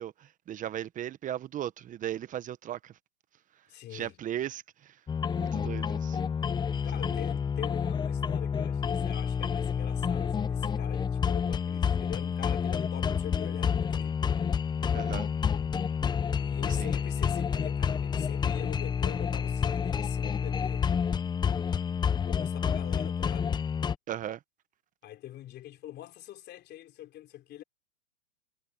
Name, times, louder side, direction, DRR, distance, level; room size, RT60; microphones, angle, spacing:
voice 1, 0.0-3.0 3.6-3.7 3.9-5.0 5.4-6.2 6.7-7.2 14.9-15.3 16.7-16.9 24.1-24.4, right 11 dB, 20° right, 1.3 m, -37 dB
voice 2, 3.7-4.2 6.8-14.2 16.3-20.9 22.3-23.6 25.0-27.6, left 13 dB, 25° left, 3.7 m, -44 dB
sound 1, 5.1-23.9, left 7 dB, 10° left, 1.0 m, -29 dB
hypercardioid pair, 125°, 38 cm